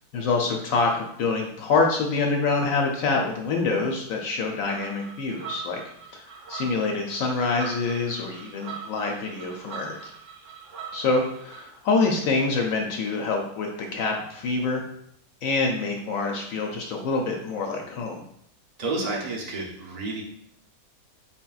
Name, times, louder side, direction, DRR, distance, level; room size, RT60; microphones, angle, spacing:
voice 1, 0.1-5.8 6.1-6.2 6.5-10.0 10.9-14.8 15.4-18.2, left 3 dB, 70° left, 2 dB, 0.8 m, -26 dB
sound 1, 4.6-11.6, right 6 dB, 60° right, 0.9 m, -41 dB
voice 2, 18.8-20.2, right 2 dB, 80° right, -3 dB, 0.3 m, -30 dB
4.2 x 3.8 x 2.3 m, 0.71 s
omnidirectional pair, 1.7 m